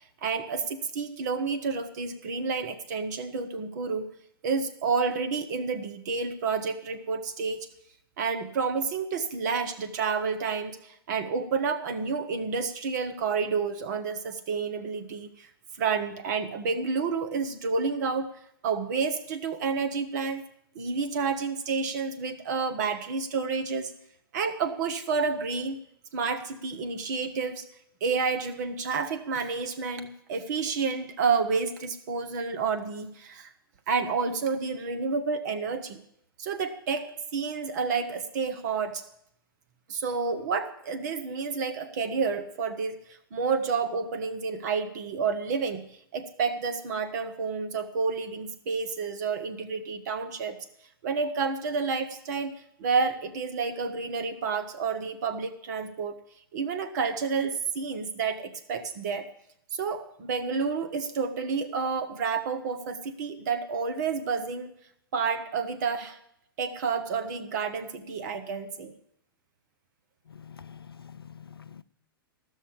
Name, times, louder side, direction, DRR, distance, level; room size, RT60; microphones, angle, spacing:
voice 1, 0.2-4.1 4.4-7.7 8.2-15.5 15.8-18.3 18.6-20.4 20.7-23.9 24.3-25.8 26.1-27.6 28.0-33.5 33.9-36.0 36.4-37.1 37.3-39.0 39.9-43.0 43.3-45.8 46.1-50.6 51.0-52.5 52.8-56.2 56.5-59.3 59.7-64.7 65.1-66.2 66.6-68.9, right 5 dB, 50° right, 1.1 m, -30 dB
voice 2, 70.3-71.8, left 7 dB, 80° left, 0.5 m, -46 dB
14.0 x 6.5 x 8.5 m
figure-of-eight pair, 105°, 12 cm